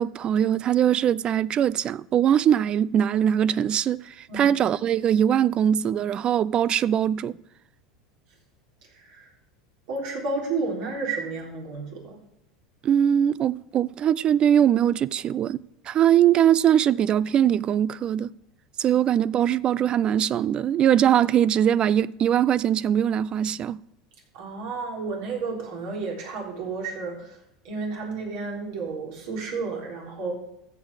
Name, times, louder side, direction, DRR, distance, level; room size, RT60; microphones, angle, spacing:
voice 1, 0.0-7.4 12.8-15.6 15.9-18.3 18.8-23.8, right 10 dB, 40° right, 0.3 m, -21 dB
voice 2, 8.8-9.3 9.9-12.2 24.3-27.4 27.6-30.3, right 4 dB, 65° right, 3.9 m, -32 dB
14.0 x 6.3 x 4.9 m
hypercardioid pair, 90°, 3 cm